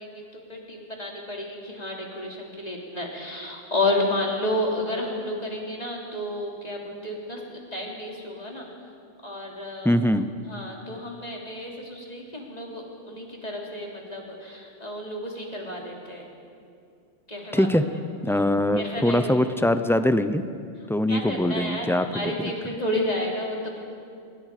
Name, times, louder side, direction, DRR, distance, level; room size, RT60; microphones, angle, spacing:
voice 1, 0.0-8.7 9.2-10.0 10.5-16.3 17.3-17.7 18.8-19.3 21.1-23.8, left 1 dB, 30° left, -2 dB, 3.6 m, -31 dB
voice 2, 9.8-10.3 17.5-17.8 18.2-20.4 20.9-22.2, left 1 dB, 5° left, 10 dB, 0.4 m, -22 dB
25.5 x 22.5 x 5.1 m, 2.4 s
omnidirectional pair, 1.3 m